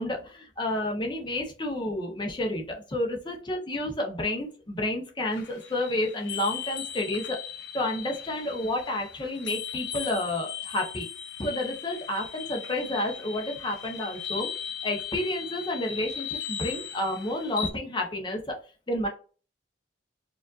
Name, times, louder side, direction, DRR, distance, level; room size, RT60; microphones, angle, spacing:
voice 1, 0.0-7.4 7.7-11.1 11.4-14.5 14.8-18.6 18.9-19.1, left 1 dB, 25° left, 1 dB, 0.9 m, -30 dB
sound 1, 5.3-17.7, left 8 dB, 65° left, 0.8 m, -38 dB
4.9 x 2.5 x 2.5 m, 0.36 s
head